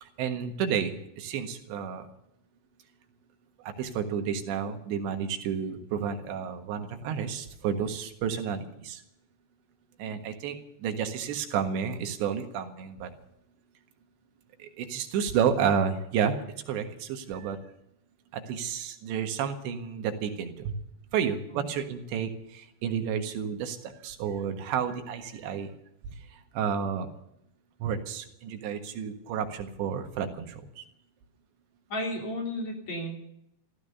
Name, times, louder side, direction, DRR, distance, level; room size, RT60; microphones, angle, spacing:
voice 1, 0.0-2.1 3.6-9.0 10.0-13.1 14.6-16.4 16.7-17.6 18.3-20.7 21.1-25.7 26.5-27.1 27.8-30.8, right 7 dB, 90° right, 6 dB, 3.8 m, -31 dB
voice 2, 31.9-33.2, left 1 dB, 45° left, 1 dB, 4.3 m, -33 dB
15.0 x 14.5 x 6.7 m, 0.79 s
omnidirectional pair, 4.9 m